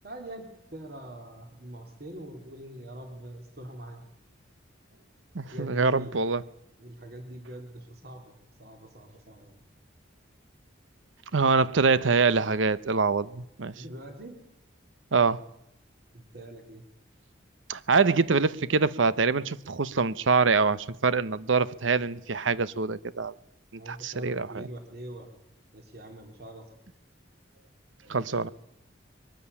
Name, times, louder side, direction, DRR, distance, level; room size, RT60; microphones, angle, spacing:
voice 1, 0.0-4.0 5.5-6.1 6.8-8.3 8.6-9.6 13.7-14.4 16.1-16.8 23.8-25.3 25.7-26.7 28.0-28.4, right 1 dB, 55° right, 3.4 m, -43 dB
voice 2, 5.3-6.4 11.3-13.7 15.1-15.4 17.7-23.3 23.9-24.7 28.1-28.5, right 4 dB, 85° right, 0.8 m, -24 dB
22.5 x 13.0 x 9.8 m
head